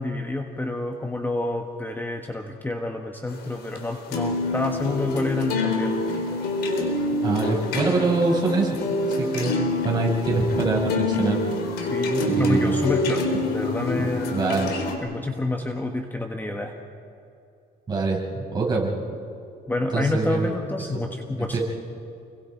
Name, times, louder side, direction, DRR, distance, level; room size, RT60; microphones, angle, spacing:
voice 1, 0.0-6.0 11.8-14.5 15.0-16.7 19.7-21.6, left 2 dB, 10° left, 3 dB, 1.5 m, -28 dB
sound 1, 3.3-15.0, left 2 dB, 70° left, 3.6 m, -26 dB
voice 2, 7.2-8.8 9.1-9.6 9.8-11.4 12.3-12.8 13.9-14.7 17.9-19.2 19.9-20.5 21.5-21.6, right 3 dB, 25° right, -3 dB, 5.9 m, -24 dB
29.5 x 22.5 x 4.6 m, 2.5 s
cardioid pair, 110°, 17 cm